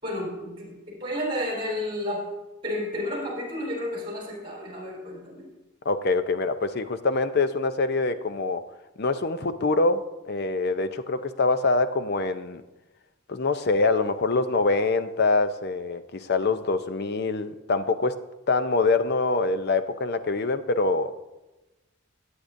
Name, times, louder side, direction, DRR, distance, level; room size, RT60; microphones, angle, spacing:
voice 1, 0.0-2.2 2.6-5.5, left 1 dB, 25° right, -3 dB, 4.6 m, -31 dB
voice 2, 5.9-8.6 9.0-12.6 13.3-18.2 18.5-21.2, left 3 dB, 50° left, 11 dB, 0.6 m, -24 dB
17.0 x 9.6 x 2.6 m, 1.1 s
head